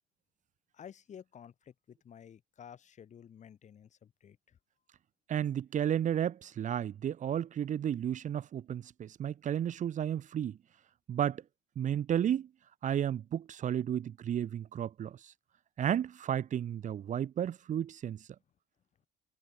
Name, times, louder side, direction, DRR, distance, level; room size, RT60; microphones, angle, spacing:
voice 1, 0.7-4.6, left 8 dB, 45° left, 2.0 m, -52 dB
voice 2, 5.3-10.6 11.1-11.4 11.8-12.5 12.8-15.3 15.8-18.3, right 9 dB, 45° right, 1.0 m, -33 dB
cardioid pair, 110°, 17 cm